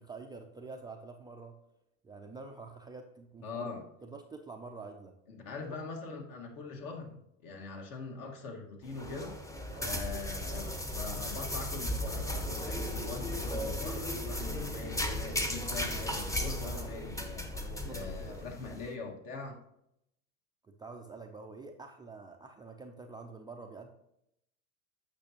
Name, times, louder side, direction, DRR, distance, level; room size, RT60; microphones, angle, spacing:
voice 1, 0.0-1.5 2.0-3.7 4.0-5.1 5.7-5.8 9.7-10.0 16.5-16.9 17.5-18.4 20.6-23.9, right 4 dB, 10° right, 2 dB, 0.3 m, -47 dB
voice 2, 3.4-3.8 5.3-7.2 7.4-9.4 9.8-17.5 17.8-19.5, left 4 dB, 55° left, 2 dB, 1.7 m, -42 dB
sound 1, 8.9-18.9, left 1 dB, 10° left, 0.7 m, -36 dB
8.6 x 5.9 x 2.9 m, 0.79 s
supercardioid pair, 105°, 40 cm